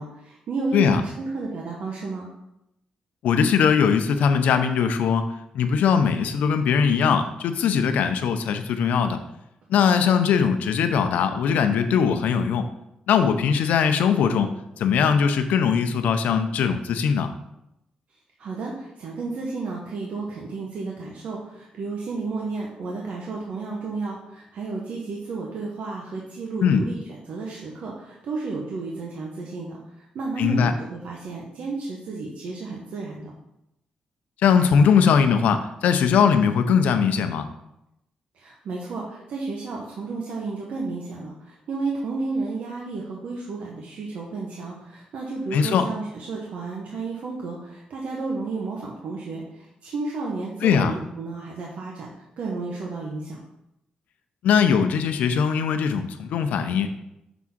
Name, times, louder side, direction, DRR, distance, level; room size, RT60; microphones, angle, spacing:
voice 1, 0.0-2.3 18.4-27.0 27.3-33.3 38.3-53.4, right 3 dB, 70° right, -2 dB, 1.1 m, -32 dB
voice 2, 3.2-9.2 9.7-12.7 13.1-17.3 26.6-26.8 30.4-30.7 34.4-37.5 45.5-45.8 50.6-50.9 54.4-56.9, left 6 dB, 85° left, 8 dB, 0.6 m, -20 dB
6.1 x 3.6 x 5.9 m, 0.85 s
cardioid pair, 100°, 3 cm